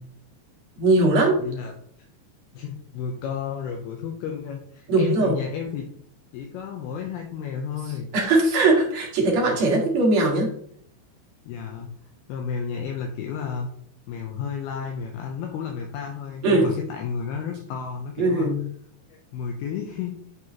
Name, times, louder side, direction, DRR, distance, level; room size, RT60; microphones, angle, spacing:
voice 1, 0.8-1.4 4.9-5.4 8.1-10.5 16.4-16.7 18.2-18.6, right 2 dB, 50° right, -3 dB, 2.3 m, -20 dB
voice 2, 1.4-1.7 2.5-5.9 6.3-8.1 11.5-11.9 12.3-13.7 14.1-18.5 19.1-20.2, left 6 dB, 80° left, 2 dB, 2.4 m, -32 dB
9.6 x 5.3 x 2.9 m, 0.63 s
omnidirectional pair, 5.2 m